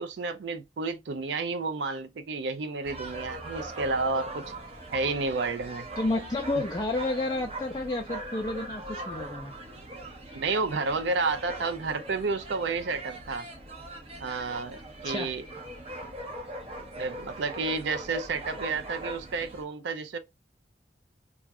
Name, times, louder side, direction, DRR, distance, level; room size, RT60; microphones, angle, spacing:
voice 1, 0.0-4.5 4.9-5.9 10.3-13.5 14.2-15.4 17.0-20.2, right 3 dB, 75° right, 0.4 m, -31 dB
sound 1, 2.8-19.6, right 1 dB, 35° right, 0.9 m, -40 dB
voice 2, 6.0-9.5 15.0-15.3, left 2 dB, 20° left, 0.4 m, -30 dB
2.4 x 2.3 x 4.0 m
head